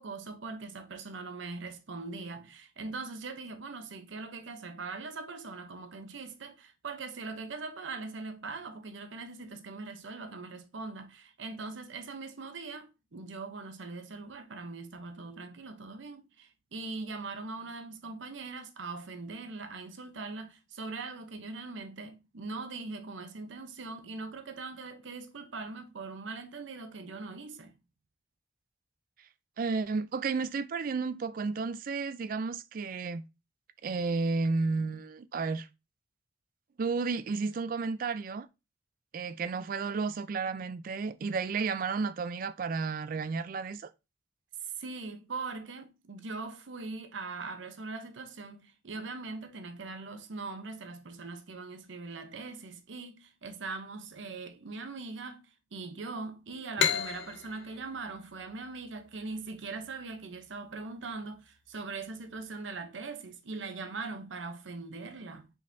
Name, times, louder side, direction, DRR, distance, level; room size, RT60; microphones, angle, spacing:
voice 1, 0.0-27.7 44.6-65.5, right 3 dB, 80° right, 0.7 m, -41 dB
voice 2, 29.6-33.2 33.8-35.7 36.8-38.5 39.1-43.9, right 4 dB, 45° right, 0.3 m, -32 dB
sound 1, 56.8-60.2, left 7 dB, 65° left, 0.6 m, -33 dB
4.9 x 3.9 x 2.6 m
head